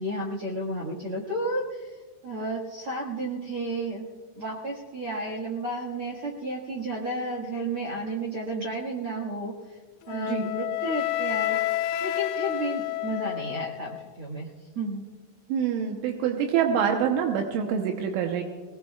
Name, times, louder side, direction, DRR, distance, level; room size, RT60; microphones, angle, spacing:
voice 1, 0.0-2.0 2.2-4.0 4.3-9.8 10.1-11.6 12.0-14.5 14.7-15.0, right 1 dB, 55° right, -4 dB, 1.5 m, -32 dB
Wind instrument woodwind instrument, 10.1-14.1, left 13 dB, 85° left, 3.0 m, -29 dB
voice 2, 10.1-10.5 15.5-18.4, right 8 dB, 85° right, 2 dB, 3.5 m, -26 dB
21.5 x 20.5 x 2.4 m, 1.4 s
omnidirectional pair, 5.4 m